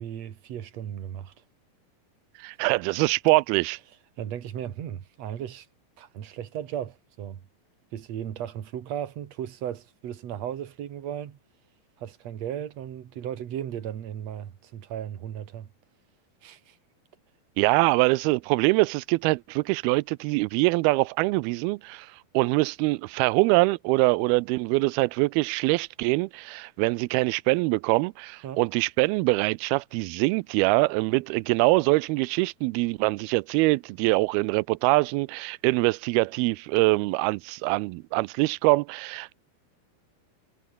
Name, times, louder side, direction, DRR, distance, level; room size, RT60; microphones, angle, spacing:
voice 1, 0.0-1.4 4.2-5.7 6.0-7.4 7.9-11.4 12.0-15.7 16.4-16.8 28.4-28.6, right 10 dB, 55° right, 2.5 m, -36 dB
voice 2, 2.4-3.8 17.6-39.3, right 23 dB, 90° right, 2.5 m, -24 dB
omnidirectional pair, 4.3 m